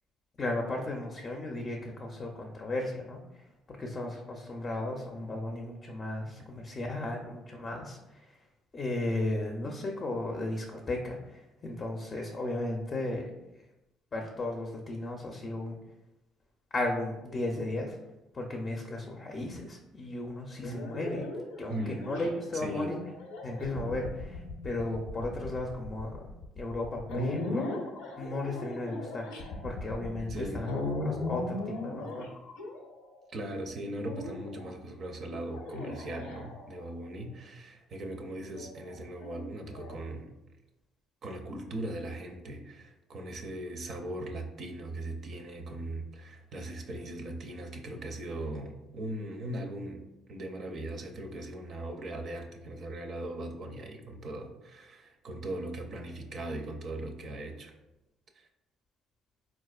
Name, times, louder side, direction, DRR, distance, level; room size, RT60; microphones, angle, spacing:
voice 1, 0.4-8.3 8.7-13.3 14.1-15.8 16.7-18.0 18.3-21.2 21.6-23.0 23.4-26.3 26.6-27.7 28.2-29.3 29.6-30.7 31.0-32.3, left 2 dB, 35° left, 1 dB, 0.5 m, -35 dB
sound 1, 20.6-33.2 34.1-34.7 35.5-37.0 38.6-39.9, left 2 dB, 85° left, 0.5 m, -38 dB
voice 2, 21.7-22.0 22.5-22.9 30.3-30.6 33.3-40.3 41.2-50.0 50.3-57.7 58.3-58.5, right 1 dB, 55° right, 4 dB, 0.5 m, -39 dB
4.1 x 2.4 x 2.3 m, 0.94 s
supercardioid pair, 70°, 0 cm